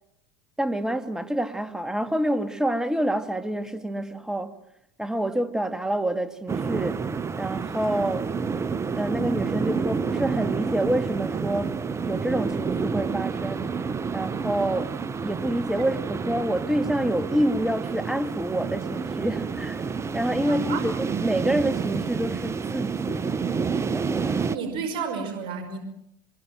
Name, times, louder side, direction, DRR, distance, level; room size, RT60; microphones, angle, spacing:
voice 1, 0.6-4.6 5.0-7.1 7.4-8.3 8.9-11.8 12.1-13.8 14.1-14.9 15.2-19.8 20.1-23.4 23.8-24.4, right 1 dB, 5° right, 2.3 m, -27 dB
sound 1, 6.5-24.6, right 5 dB, 25° right, 1.3 m, -29 dB
voice 2, 20.5-20.9 24.4-25.8, right 5 dB, 55° right, 5.4 m, -32 dB
25.0 x 22.0 x 7.8 m
hypercardioid pair, 85°, 11 cm